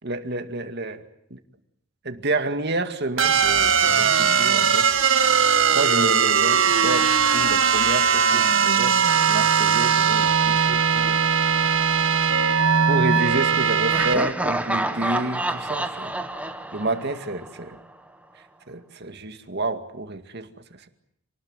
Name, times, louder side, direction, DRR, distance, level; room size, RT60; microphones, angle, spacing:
voice 1, 0.0-1.0 1.3-1.4 2.0-4.9 5.7-11.2 12.9-16.1 16.7-17.8 18.7-20.9, right 2 dB, 55° right, 8 dB, 2.2 m, -29 dB
sound 1, 3.2-14.2, right 6 dB, 75° right, 2.0 m, -19 dB
Laughter, 13.9-17.8, right 1 dB, 5° right, 1.4 m, -28 dB
28.0 x 19.5 x 9.1 m, 0.77 s
head